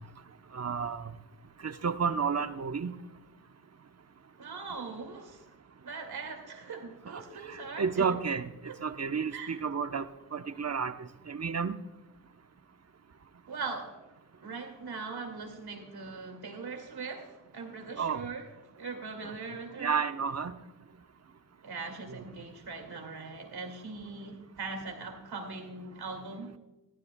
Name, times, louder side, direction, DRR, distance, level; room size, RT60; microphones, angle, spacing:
voice 1, 0.5-1.1 1.6-2.9 7.8-8.5 8.8-10.0 10.3-10.9 11.3-11.8 18.0-18.2 19.8-20.5 22.1-22.2, right 6 dB, 40° right, 10 dB, 0.9 m, -31 dB
voice 2, 4.4-5.5 5.8-8.1 8.7-8.8 9.3-9.6 13.5-14.0 14.4-18.5 18.8-20.0 21.6-26.5, right 4 dB, 70° right, 4 dB, 2.3 m, -40 dB
14.0 x 13.5 x 2.3 m, 1.0 s
cardioid pair, 45°, 39 cm